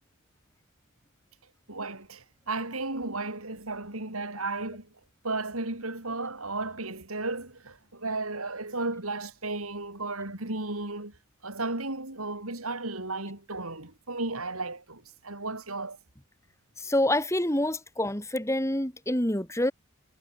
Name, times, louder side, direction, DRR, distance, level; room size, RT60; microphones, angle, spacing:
voice 1, 1.7-4.9 5.2-11.1 11.4-16.0, right 2 dB, 90° right, 5.6 m, -34 dB
voice 2, 16.8-19.7, left 1 dB, 15° left, 3.2 m, -27 dB
head